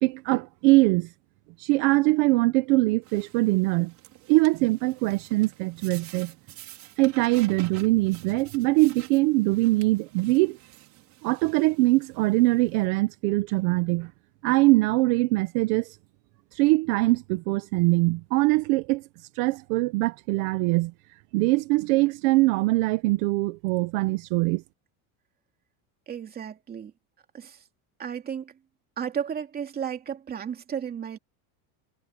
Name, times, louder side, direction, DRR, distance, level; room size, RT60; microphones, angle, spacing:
voice 1, 0.0-1.1 1.6-3.9 4.3-6.3 7.0-10.6 11.2-14.1 14.4-15.9 16.5-19.0 19.4-20.9 21.3-24.6, right 22 dB, 65° right, 1.1 m, -22 dB
sound 1, 3.0-12.9, right 15 dB, 40° right, 5.5 m, -49 dB
voice 2, 26.1-26.9 27.3-27.6 28.0-28.5 29.0-31.2, right 8 dB, 20° right, 2.7 m, -33 dB
cardioid pair, 175°, 42 cm